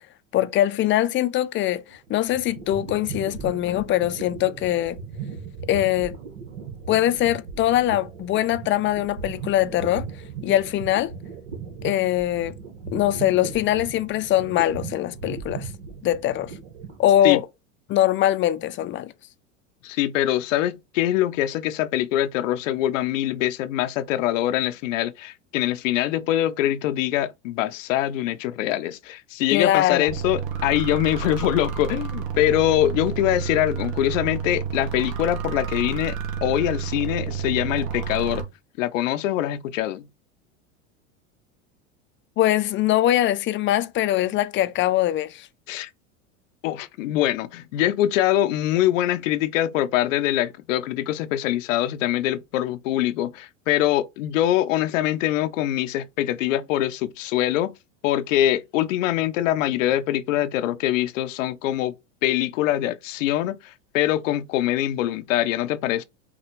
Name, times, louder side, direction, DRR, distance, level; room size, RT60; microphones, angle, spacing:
voice 1, 0.3-5.0 5.7-6.1 6.9-10.1 10.4-11.1 11.8-12.5 12.9-15.7 16.0-16.5 17.0-17.4 17.9-19.1 29.5-30.1 42.4-45.5, left 13 dB, 30° left, 0.5 m, -22 dB
sound 1, 1.9-17.4, right 6 dB, 75° right, 1.3 m, -37 dB
voice 2, 19.8-38.4 38.8-40.1 45.7-45.9 46.6-57.7 58.0-61.9 62.2-66.0, left 13 dB, 75° left, 0.6 m, -23 dB
sound 2, 30.1-38.4, right 8 dB, 45° right, 1.2 m, -30 dB
5.8 x 2.3 x 3.0 m
hypercardioid pair, 95°, 39 cm